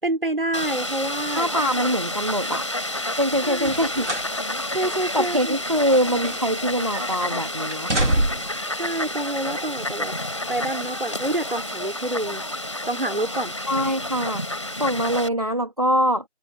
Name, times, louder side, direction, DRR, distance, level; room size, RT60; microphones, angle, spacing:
voice 1, 0.0-1.5 3.4-3.7 4.7-5.6 8.8-10.2 10.5-12.5 12.9-13.6, right 1 dB, 50° right, 5.3 m, -27 dB
Fowl, 0.5-15.3, left 1 dB, 25° left, 4.5 m, -30 dB
voice 2, 1.4-2.7 3.2-4.1 4.8-8.1 13.7-14.4 14.8-16.2, equal, 30° right, 2.6 m, -24 dB
sound 1, 3.6-4.4 4.7-4.9 5.6-6.7 6.9-7.3 7.7-8.6 9.5-9.6, right 1 dB, 80° right, 4.3 m, -26 dB
figure-of-eight pair, 180°, 35 cm